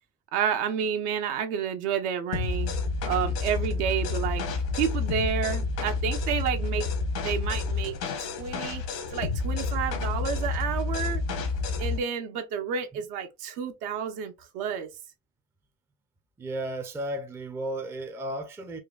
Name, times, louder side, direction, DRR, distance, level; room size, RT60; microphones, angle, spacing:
voice 1, 0.3-2.7 3.1-4.4 4.7-6.9 7.2-8.8 9.1-11.2 11.8-14.9, right 8 dB, 70° right, 0.9 m, -30 dB
sound 1, 2.3-12.0, left 4 dB, 80° left, 1.0 m, -29 dB
voice 2, 16.4-18.8, right 1 dB, 5° right, 0.4 m, -34 dB
3.8 x 2.2 x 2.4 m
hypercardioid pair, 75°, 47 cm